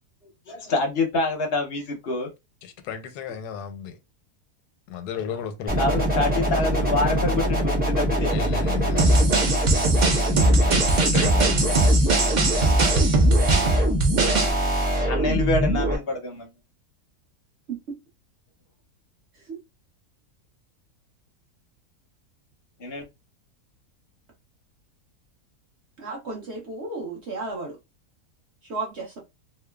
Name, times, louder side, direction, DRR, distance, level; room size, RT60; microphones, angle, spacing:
voice 1, 0.5-2.3 5.8-8.3 15.1-16.5 22.8-23.0, left 2 dB, 55° left, 0.7 m, -26 dB
voice 2, 2.6-4.0 4.9-5.9 8.3-9.2 10.6-11.9, left 8 dB, 85° left, 1.1 m, -34 dB
sound 1, 5.7-16.0, right 1 dB, 10° right, 0.5 m, -23 dB
sound 2, 9.0-14.5, right 2 dB, 75° right, 0.4 m, -20 dB
voice 3, 26.0-27.8 28.6-29.2, right 3 dB, 50° right, 0.9 m, -33 dB
2.9 x 2.1 x 2.2 m
omnidirectional pair, 1.7 m